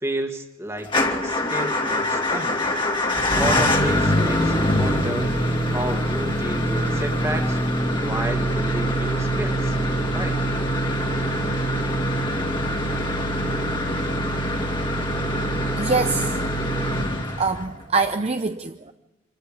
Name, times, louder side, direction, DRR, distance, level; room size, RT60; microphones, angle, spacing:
voice 1, 0.0-2.6 3.1-5.3 5.7-7.6 8.0-9.8 10.1-10.4, right 1 dB, 15° right, 4 dB, 1.9 m, -31 dB
Motor vehicle (road) / Engine starting / Idling, 0.8-17.8, equal, 25° left, 2.3 m, -23 dB
voice 2, 15.8-16.4 17.4-18.9, right 4 dB, 30° right, 7 dB, 0.6 m, -24 dB
26.0 x 13.5 x 9.1 m, 1.1 s
head